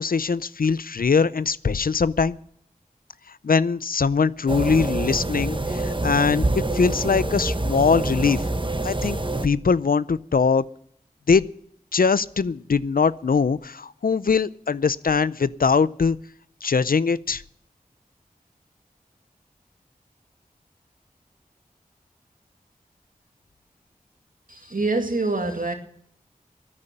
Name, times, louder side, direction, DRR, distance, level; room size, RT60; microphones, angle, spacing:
voice 1, 0.0-2.4 3.4-6.5 6.7-8.4 8.8-9.2 9.4-10.7 11.3-11.5 11.9-16.2 16.6-17.4, left 5 dB, 85° left, 0.5 m, -21 dB
sound 1, 4.5-9.5, right 2 dB, 35° right, 1.2 m, -26 dB
voice 2, 24.5-25.7, right 2 dB, 70° right, 2.4 m, -25 dB
14.0 x 9.8 x 8.5 m
wide cardioid pair, 50°, 14 cm